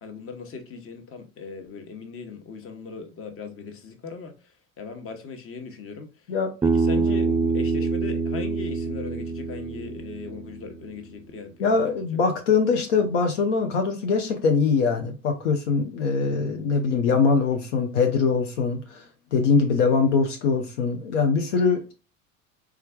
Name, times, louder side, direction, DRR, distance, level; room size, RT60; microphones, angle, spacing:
voice 1, 0.0-6.3 6.6-12.1, left 4 dB, 35° left, 1.0 m, -39 dB
Bass guitar, 6.6-10.9, right 4 dB, 10° right, 0.3 m, -25 dB
voice 2, 11.6-19.0 19.3-21.9, left 5 dB, 70° left, 0.7 m, -22 dB
4.3 x 3.6 x 2.2 m
figure-of-eight pair, 65°, 39 cm